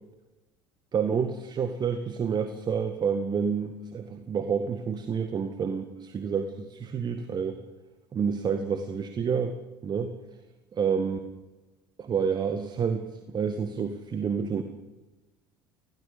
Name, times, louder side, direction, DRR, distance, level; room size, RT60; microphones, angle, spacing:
voice 1, 0.9-7.6 8.1-9.6 9.8-10.1 10.7-11.2 12.0-14.6, right 6 dB, 35° right, 8 dB, 1.9 m, -29 dB
20.0 x 17.0 x 8.6 m, 1.1 s
hypercardioid pair, 65°, 12 cm